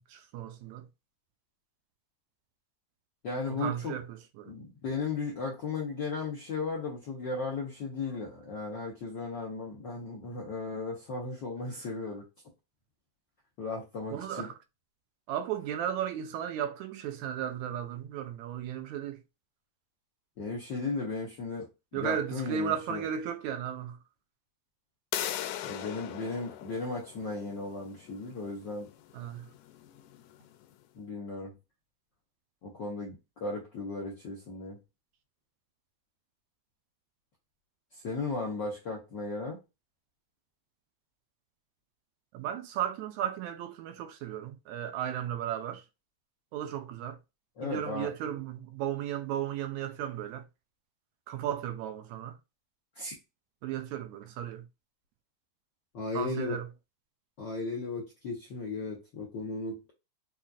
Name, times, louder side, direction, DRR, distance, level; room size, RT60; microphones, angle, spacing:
voice 1, 0.1-0.9 3.5-4.5 14.1-14.5 15.3-19.2 21.9-24.0 29.1-29.5 42.3-45.8 46.5-47.2 47.6-50.5 51.3-52.4 53.6-54.7 56.1-56.7, right 10 dB, 80° right, 1.8 m, -35 dB
voice 2, 3.2-3.9 4.5-12.2 13.6-14.5 20.4-21.7 21.9-23.1 25.6-28.9 30.9-31.5 32.6-34.8 37.9-39.6 47.6-48.1 53.0-53.1 55.9-56.6 57.4-59.9, left 3 dB, 70° left, 1.0 m, -36 dB
sound 1, 25.1-30.7, left 11 dB, 90° left, 2.0 m, -40 dB
5.6 x 2.4 x 2.4 m
omnidirectional pair, 3.4 m